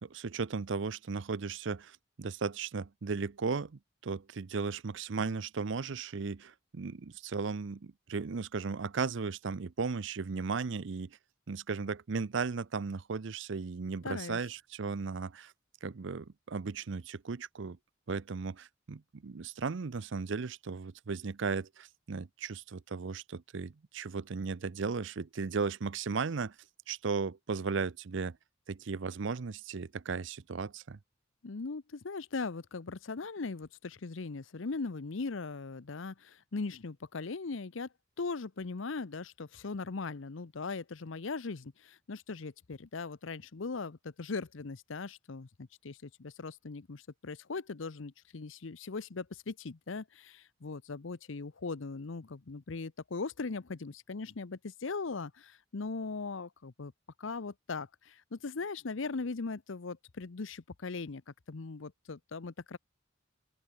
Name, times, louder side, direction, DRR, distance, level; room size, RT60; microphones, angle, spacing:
voice 1, 0.0-11.2 11.5-15.5 15.8-17.8 18.1-26.6 26.9-28.4 28.7-31.0, right 5 dB, 65° right, 0.6 m, -36 dB
voice 2, 14.0-14.4 31.4-37.9 38.2-56.9 57.2-61.2 61.5-62.8, left 4 dB, 70° left, 0.7 m, -39 dB
open air
head